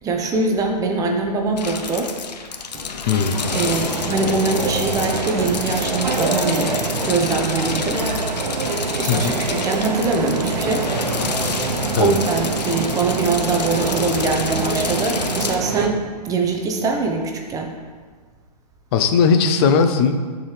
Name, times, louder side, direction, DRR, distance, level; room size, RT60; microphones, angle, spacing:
voice 1, 0.0-2.1 3.5-6.8 7.1-8.0 9.0-10.9 12.0-17.7, right 3 dB, 15° right, 3 dB, 0.8 m, -23 dB
sound 1, 1.6-15.6, left 5 dB, 85° left, 0.8 m, -29 dB
voice 2, 3.1-3.4 9.1-9.3 11.9-12.1 18.9-20.1, left 5 dB, 40° left, 7 dB, 0.8 m, -17 dB
sound 2, 3.4-15.9, right 4 dB, 85° right, 1.0 m, -25 dB
12.5 x 4.8 x 3.4 m, 1.5 s
hypercardioid pair, 135°, 21 cm